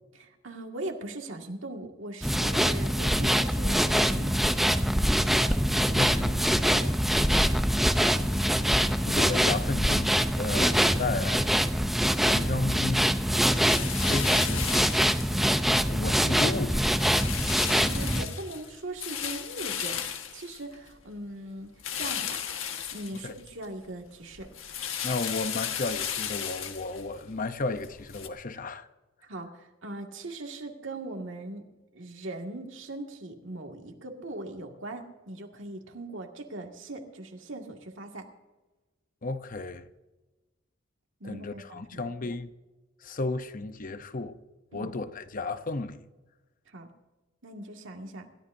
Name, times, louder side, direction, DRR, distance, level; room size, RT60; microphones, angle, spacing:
voice 1, 0.1-4.4 6.8-7.0 8.0-8.8 12.7-13.0 15.3-15.5 17.7-20.0 20.3-22.4 22.9-24.5 29.2-31.6 31.9-38.3 41.2-42.1 44.7-44.9 46.7-46.9 47.4-48.3, right 2 dB, 70° right, 2.1 m, -40 dB
sound 1, 2.2-18.3, equal, ahead, 0.6 m, -24 dB
voice 2, 5.9-6.4 9.0-11.5 12.2-13.1 14.1-14.9 15.9-16.9 23.2-23.3 25.0-28.9 39.2-39.9 41.2-42.5 43.0-44.4 44.7-46.0, left 3 dB, 45° left, 0.7 m, -33 dB
sound 2, 13.5-15.7 16.1-16.5 16.8-21.1 21.8-23.7 24.0-28.3, left 9 dB, 85° left, 1.5 m, -35 dB
26.5 x 13.5 x 2.7 m
head